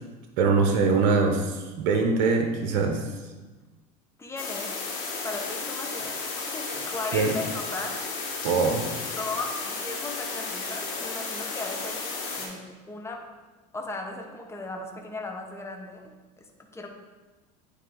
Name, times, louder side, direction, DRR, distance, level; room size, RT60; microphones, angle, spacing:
voice 1, 0.4-3.0 7.1-7.3 8.4-8.9, right 4 dB, 65° right, 4 dB, 0.8 m, -23 dB
voice 2, 4.2-4.8 5.2-8.5 8.8-13.2 13.7-16.0 16.4-16.9, left 3 dB, 10° left, 2 dB, 0.9 m, -37 dB
sound 1, 4.4-12.5, left 4 dB, 65° left, 1.9 m, -33 dB
9.3 x 3.3 x 3.8 m, 1.3 s
hypercardioid pair, 85°, 21 cm